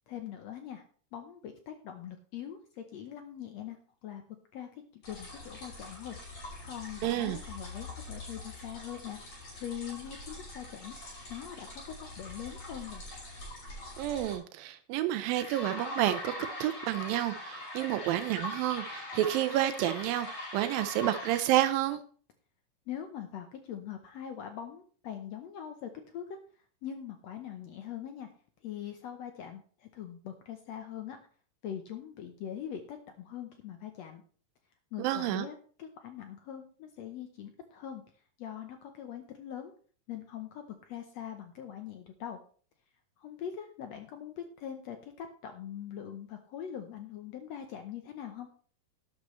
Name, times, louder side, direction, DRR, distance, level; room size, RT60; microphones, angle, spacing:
voice 1, 0.1-0.8 1.1-4.2 4.5-11.0 11.3-13.0 22.9-26.4 26.8-28.3 28.6-31.2 31.6-34.2 34.9-38.0 38.4-39.7 40.1-42.4 43.2-48.5, left 9 dB, 75° left, 6 dB, 1.6 m, -42 dB
sound 1, 5.0-14.3 15.3-21.4, left 1 dB, 50° left, 7.1 m, -42 dB
voice 2, 7.0-7.4 14.0-22.0 35.0-35.5, right 14 dB, 90° right, 9 dB, 2.4 m, -30 dB
12.0 x 10.5 x 3.1 m, 0.44 s
omnidirectional pair, 4.0 m